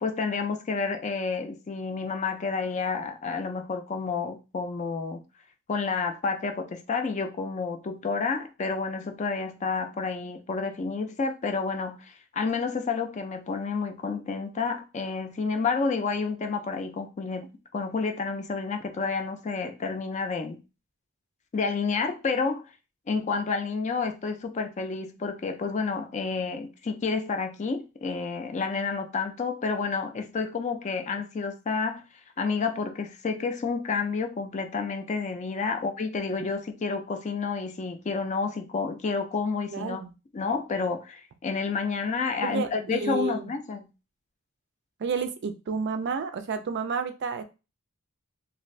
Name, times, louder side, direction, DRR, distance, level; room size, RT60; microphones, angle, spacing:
voice 1, 0.0-5.2 5.7-20.6 21.5-22.7 23.1-32.0 32.4-40.0 40.3-43.9, left 4 dB, 30° left, 0.4 m, -30 dB
voice 2, 39.7-40.1 42.4-43.5 45.0-47.4, right 5 dB, 50° right, 0.3 m, -30 dB
2.5 x 2.5 x 3.1 m
head